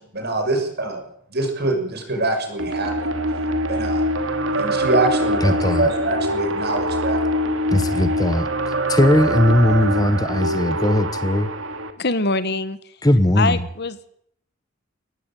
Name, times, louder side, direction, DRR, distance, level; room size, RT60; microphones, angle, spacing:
voice 1, 0.1-1.0 1.3-3.1 3.7-4.1 4.6-7.2, right 2 dB, 55° right, 4 dB, 6.8 m, -24 dB
sound 1, 2.6-11.9, equal, 85° right, 2.6 m, -23 dB
voice 2, 5.4-5.9 7.7-11.5 13.0-13.6, left 1 dB, 20° left, 12 dB, 1.1 m, -19 dB
voice 3, 12.0-12.8 13.4-14.0, left 3 dB, 55° left, 14 dB, 1.5 m, -23 dB
19.0 x 15.5 x 9.2 m, 0.68 s
head